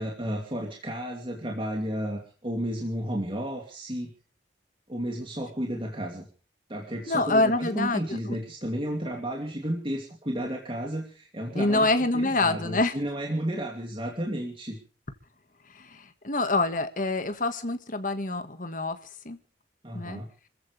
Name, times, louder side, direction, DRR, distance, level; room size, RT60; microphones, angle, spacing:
voice 1, 0.0-4.1 4.9-6.2 6.7-14.8 19.8-20.3, equal, 30° right, 1 dB, 2.7 m, -32 dB
voice 2, 7.1-8.0 8.3-8.4 11.5-13.0 15.7-19.0 19.2-19.4 19.9-20.2, left 2 dB, 45° left, 9 dB, 1.7 m, -26 dB
28.0 x 14.5 x 3.3 m, 0.38 s
head